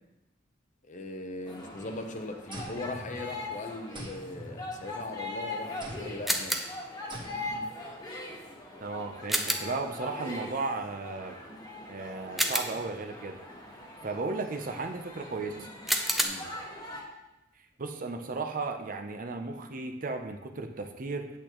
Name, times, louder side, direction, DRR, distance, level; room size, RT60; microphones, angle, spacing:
voice 1, 0.9-6.6 10.1-10.2 16.2-16.5, left 2 dB, 45° left, 5 dB, 0.8 m, -39 dB
sound 1, 1.5-17.0, left 2 dB, 20° left, 1.4 m, -41 dB
sound 2, 2.5-3.6 3.9-5.2 5.8-6.3 7.1-7.7, right 1 dB, 25° right, 1.1 m, -44 dB
sound 3, 6.3-6.9 9.3-9.8 12.4-13.0 15.9-16.2, equal, ahead, 0.6 m, -29 dB
voice 2, 8.8-11.4 11.9-13.4 14.0-15.7 17.8-21.3, right 3 dB, 50° right, 5 dB, 0.6 m, -35 dB
8.4 x 8.3 x 3.0 m, 0.98 s
head